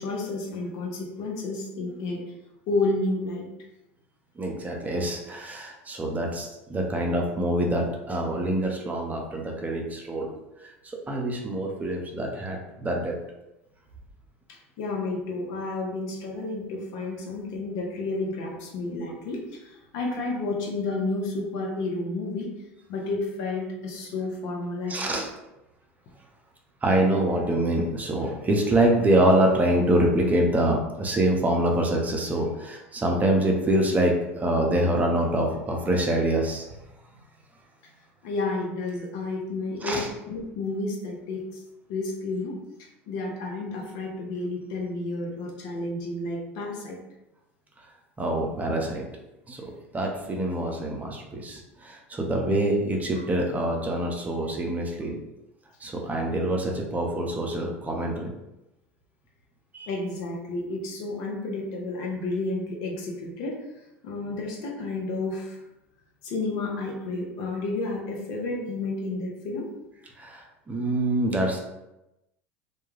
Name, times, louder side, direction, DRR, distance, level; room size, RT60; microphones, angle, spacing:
voice 1, 0.0-2.2 2.7-3.5 14.5-22.5 22.9-25.1 38.2-41.6 41.9-42.6 43.1-47.0 59.9-63.7 64.0-65.6 66.2-69.7, left 2 dB, 60° left, -1 dB, 0.7 m, -31 dB
voice 2, 4.4-10.3 10.6-13.2 24.9-25.3 26.8-36.7 39.8-40.1 48.2-49.0 49.5-55.1 55.8-58.3 59.7-59.9 70.2-71.6, right 1 dB, 20° right, 0 dB, 0.6 m, -25 dB
2.3 x 2.2 x 3.2 m, 0.93 s
hypercardioid pair, 80°, 7 cm